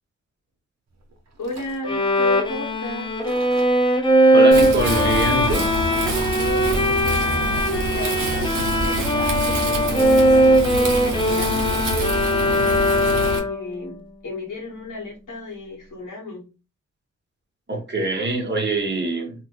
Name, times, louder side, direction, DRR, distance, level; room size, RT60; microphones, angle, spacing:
sound 1, 1.0-2.9 3.2-4.0 4.5-6.8 7.1-7.4, right 3 dB, 60° right, 0.9 m, -40 dB
voice 1, 1.4-3.2 6.2-7.6 7.9-11.8 13.0-16.5, left 2 dB, 85° left, -1 dB, 1.4 m, -34 dB
Bowed string instrument, 1.9-13.7, equal, 15° left, 0.6 m, -20 dB
voice 2, 4.3-5.7 17.7-19.3, right 2 dB, 35° right, 2 dB, 1.1 m, -24 dB
Wind, 4.5-13.4, right 1 dB, 85° right, 0.9 m, -26 dB
3.0 x 2.1 x 3.0 m, 0.30 s
cardioid pair, 70°, 31 cm